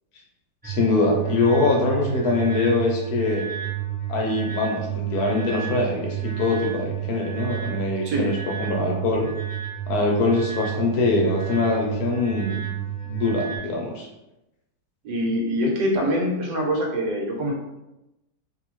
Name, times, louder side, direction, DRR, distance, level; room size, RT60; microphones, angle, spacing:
voice 1, 0.6-3.4 4.1-9.3 9.9-12.6 13.1-14.1, left 3 dB, 70° left, -1 dB, 0.9 m, -23 dB
sound 1, 0.6-13.6, right 11 dB, 10° right, 0.4 m, -30 dB
voice 2, 15.0-17.5, equal, 80° right, -1 dB, 1.4 m, -24 dB
2.7 x 2.6 x 2.9 m, 0.94 s
omnidirectional pair, 2.0 m